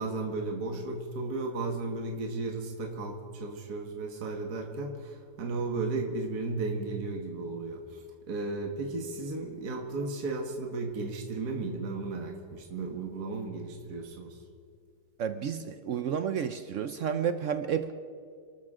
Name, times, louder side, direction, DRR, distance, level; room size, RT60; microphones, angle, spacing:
voice 1, 0.0-14.4, right 3 dB, 55° right, 1 dB, 2.0 m, -34 dB
voice 2, 15.2-17.9, right 8 dB, 90° right, 9 dB, 0.6 m, -31 dB
28.5 x 13.0 x 3.7 m, 2.2 s
omnidirectional pair, 2.1 m